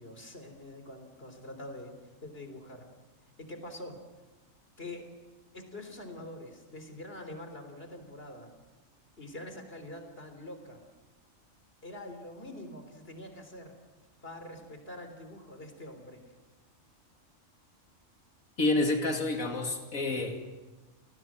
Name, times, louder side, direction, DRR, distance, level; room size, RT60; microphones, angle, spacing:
voice 1, 0.0-1.9 2.2-2.9 3.4-4.0 4.8-5.1 5.5-8.5 9.2-10.8 11.8-13.8 14.2-16.2, left 1 dB, 45° left, 6 dB, 3.8 m, -45 dB
voice 2, 18.6-20.4, left 2 dB, 90° left, 3 dB, 2.9 m, -29 dB
30.0 x 19.0 x 7.5 m, 1.2 s
omnidirectional pair, 1.4 m